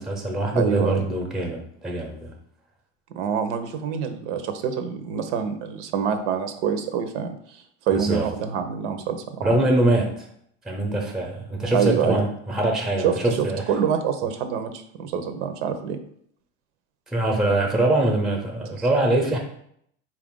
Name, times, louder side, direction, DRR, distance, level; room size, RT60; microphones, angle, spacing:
voice 1, 0.0-2.3 7.9-8.3 9.4-10.3 10.6-13.6 17.1-19.4, right 2 dB, ahead, 1 dB, 0.6 m, -23 dB
voice 2, 0.5-1.0 3.1-9.5 11.7-12.2 13.0-16.0 18.7-18.9, right 7 dB, 90° right, 8 dB, 0.7 m, -26 dB
4.3 x 2.5 x 3.6 m, 0.68 s
supercardioid pair, 130°, 34 cm